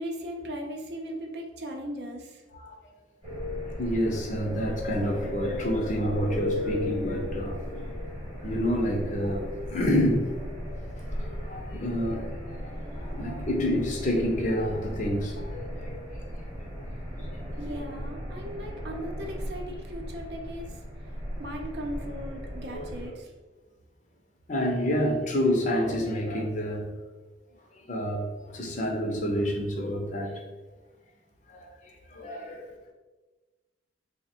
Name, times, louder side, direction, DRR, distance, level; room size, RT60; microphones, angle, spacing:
voice 1, 0.0-2.4 17.6-20.8 21.4-23.3, equal, 60° right, 2 dB, 0.6 m, -37 dB
sound 1, 3.2-23.1, equal, 25° right, 1.0 m, -36 dB
voice 2, 3.8-7.9 8.4-10.3 11.4-16.0 16.4-16.5 17.3-17.4 22.7-22.9 24.5-26.9 27.9-30.4 31.5-31.7 32.1-32.7, equal, 40° left, 0 dB, 0.6 m, -28 dB
3.3 x 2.1 x 4.3 m, 1.2 s
head